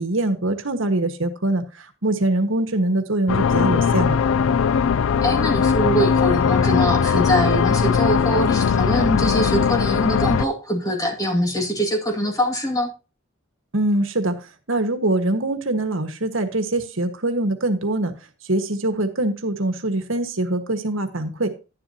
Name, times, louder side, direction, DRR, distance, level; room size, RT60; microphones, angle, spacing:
voice 1, 0.0-4.2 13.7-14.3 14.7-18.1 18.5-21.5, right 2 dB, 70° right, 7 dB, 1.6 m, -23 dB
sound 1, 3.3-10.4, left 6 dB, 75° left, 0.4 m, -19 dB
voice 2, 5.2-12.9, equal, 15° left, 2 dB, 2.2 m, -23 dB
11.0 x 11.0 x 2.9 m, 0.31 s
head